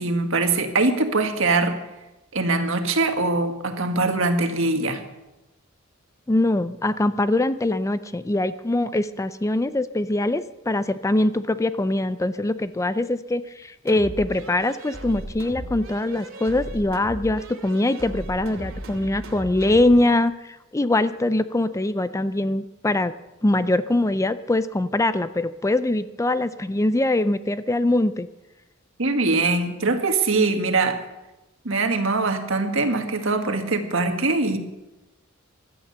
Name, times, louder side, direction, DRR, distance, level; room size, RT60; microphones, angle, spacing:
voice 1, 0.0-1.8 2.3-5.0 29.0-31.0 31.7-34.6, right 3 dB, 70° right, 6 dB, 1.7 m, -22 dB
voice 2, 6.3-23.1 23.4-28.3, left 2 dB, 15° left, 13 dB, 0.4 m, -23 dB
sound 1, 13.9-20.1, right 1 dB, 85° right, 2.5 m, -37 dB
16.0 x 12.0 x 6.8 m, 0.99 s
head